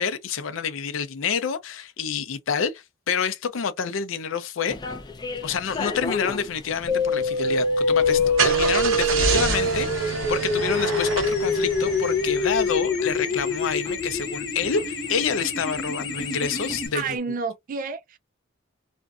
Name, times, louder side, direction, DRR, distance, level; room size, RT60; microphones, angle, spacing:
voice 1, 0.0-4.8 5.4-17.2, left 6 dB, 80° left, 0.5 m, -28 dB
sound 1, 4.7-17.2, left 4 dB, 20° left, 0.4 m, -39 dB
sound 2, 6.9-16.9, left 2 dB, 60° left, 0.9 m, -25 dB
Car / Engine starting, 8.0-12.7, right 4 dB, 80° right, 0.9 m, -27 dB
voice 2, 16.9-18.2, right 5 dB, 45° right, 0.3 m, -30 dB
2.5 x 2.2 x 2.4 m
head